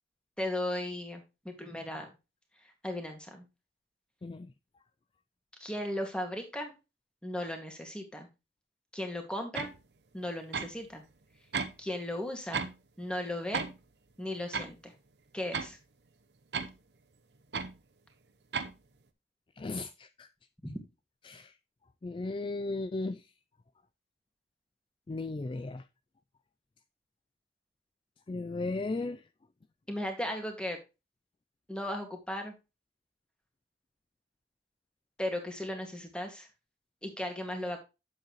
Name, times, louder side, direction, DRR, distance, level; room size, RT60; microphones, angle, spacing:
voice 1, 0.4-2.1 2.8-3.4 5.6-6.7 7.2-8.3 8.9-9.7 10.1-11.0 11.8-12.7 13.0-13.7 14.2-14.9 15.3-15.8 29.9-30.8 31.7-32.5 35.2-36.5 37.0-37.8, left 1 dB, 5° left, 2.1 m, -36 dB
sound 1, 9.6-9.8 10.5-10.8 11.5-11.8 12.5-12.8 13.5-13.8 14.5-14.7 15.5-15.7 16.5-16.8 17.5-17.8 18.5-18.8, right 5 dB, 70° right, 0.9 m, -34 dB
voice 2, 19.6-20.3 21.2-21.5 22.0-23.3 25.1-25.8 28.3-29.2, left 3 dB, 30° left, 0.3 m, -36 dB
9.2 x 7.6 x 3.1 m
head